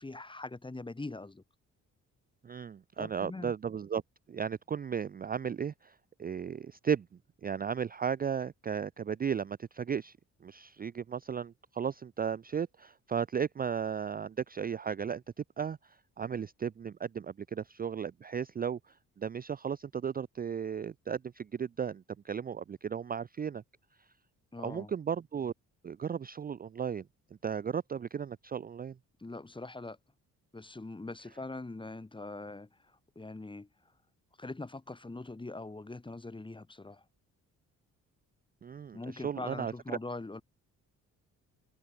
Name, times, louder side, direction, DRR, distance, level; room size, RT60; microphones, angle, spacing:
voice 1, 0.0-1.4 3.0-3.5 24.5-24.9 29.2-30.0 30.5-32.7 33.1-33.7 34.4-37.0 38.9-40.4, left 2 dB, 15° left, 1.3 m, -42 dB
voice 2, 2.4-4.0 4.3-7.1 7.4-10.2 10.4-23.6 24.6-25.5 25.8-27.0 27.4-28.9 38.6-39.7, right 7 dB, 25° right, 0.4 m, -35 dB
supercardioid pair, 65°, 34 cm